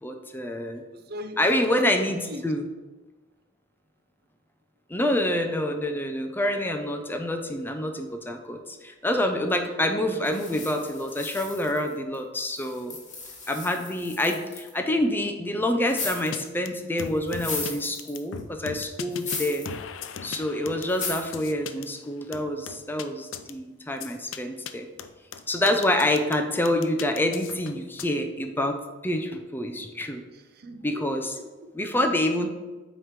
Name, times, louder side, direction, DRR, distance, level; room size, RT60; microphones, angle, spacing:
voice 1, 0.0-0.8 1.4-2.6 4.9-13.0 13.5-19.7 20.2-24.9 25.5-28.8 29.0-30.2 30.8-31.3 31.7-32.5, left 1 dB, 10° left, 6 dB, 0.5 m, -27 dB
voice 2, 0.9-2.5 30.3-31.9, equal, 55° right, 8 dB, 0.6 m, -40 dB
sound 1, 10.2-12.2 12.5-14.7 15.8-16.5 17.0-18.4 19.1-19.7 20.1-20.2 20.9-21.4, left 4 dB, 40° left, 1.4 m, -36 dB
sound 2, 16.3-16.4 16.7-16.8 17.0-17.7 18.0-19.4 19.7-21.8 22.3-23.0 23.3-23.5 24.0-24.4 24.7-24.8 25.0-26.3 26.7-28.0, left 7 dB, 90° left, 0.5 m, -38 dB
7.6 x 3.1 x 5.0 m, 1.2 s
head